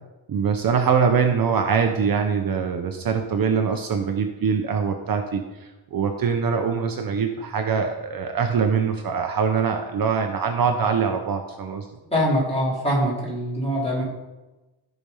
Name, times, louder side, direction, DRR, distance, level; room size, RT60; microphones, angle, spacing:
voice 1, 0.3-11.9, right 6 dB, 45° right, 5 dB, 0.8 m, -23 dB
voice 2, 12.1-14.0, equal, 15° left, -6 dB, 4.1 m, -23 dB
14.5 x 5.1 x 5.5 m, 1.1 s
wide cardioid pair, 170°, 47 cm